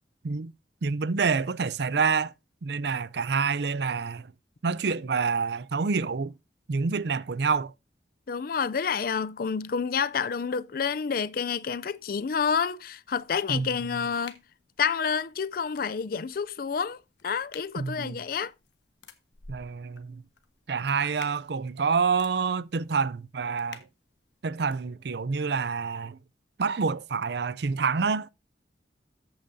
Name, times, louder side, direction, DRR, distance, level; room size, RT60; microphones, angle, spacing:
voice 1, 0.8-2.3 2.6-4.3 4.6-6.3 6.7-7.7 13.5-13.7 17.8-18.2 19.5-20.2 20.7-23.8 24.4-26.2 26.6-28.3, right 5 dB, 65° right, 0.5 m, -27 dB
voice 2, 8.3-14.4 14.8-17.0 17.2-18.5, left 6 dB, 50° left, 0.4 m, -29 dB
sound 1, 13.1-24.8, left 5 dB, 80° left, 1.4 m, -54 dB
14.0 x 8.9 x 2.7 m
head